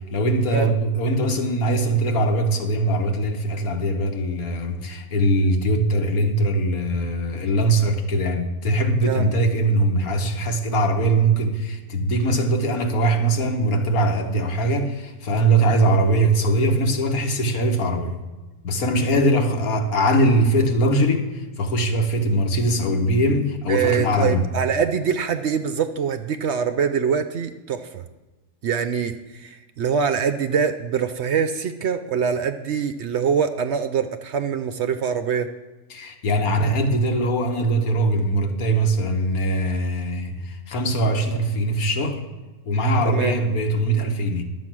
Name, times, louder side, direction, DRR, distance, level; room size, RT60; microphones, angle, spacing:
voice 1, 0.1-18.2 18.6-24.5 35.9-42.2 42.7-44.4, right 1 dB, 80° left, 4 dB, 1.7 m, -21 dB
voice 2, 23.7-28.0 28.6-35.5 43.0-43.4, right 7 dB, 65° right, 9 dB, 0.7 m, -24 dB
11.5 x 7.7 x 6.1 m, 1.2 s
omnidirectional pair, 1.5 m